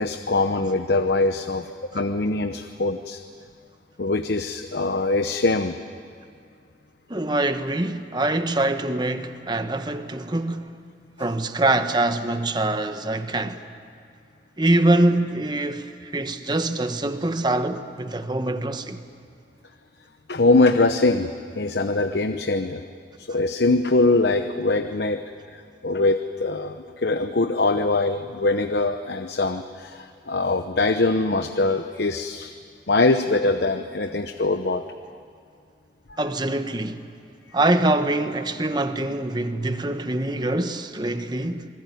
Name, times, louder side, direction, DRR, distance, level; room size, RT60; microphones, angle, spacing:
voice 1, 0.0-3.2 4.0-5.7 20.3-21.3 21.5-22.9 23.2-25.2 25.5-32.5 32.9-34.8, left 2 dB, 70° left, 0.9 m, -22 dB
voice 2, 7.1-10.7 11.2-13.6 14.6-19.0 36.2-37.1 37.5-41.7, right 2 dB, 25° right, 1.1 m, -24 dB
27.5 x 20.5 x 9.3 m
head